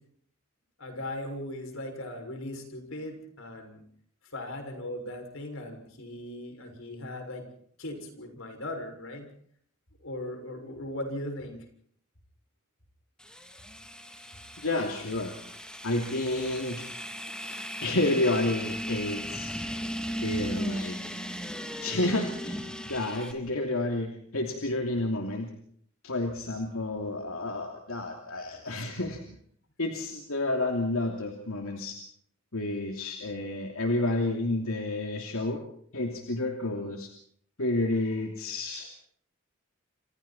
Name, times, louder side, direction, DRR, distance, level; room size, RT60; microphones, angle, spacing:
voice 1, 0.8-3.8 4.3-7.4 7.8-9.3 10.0-11.6 17.2-17.7 20.3-20.4 28.5-28.9, left 1 dB, 70° left, 5 dB, 6.5 m, -39 dB
sound 1, 13.2-23.3, equal, 5° left, 2.8 m, -37 dB
voice 2, 14.6-15.3 15.8-16.9 17.8-19.5 20.2-21.0 21.8-22.6 22.9-25.5 26.0-29.2 29.8-32.0 32.5-35.6 35.9-37.1 37.6-38.9, left 2 dB, 90° left, 2 dB, 2.9 m, -30 dB
29.0 x 26.5 x 4.4 m, 0.63 s
head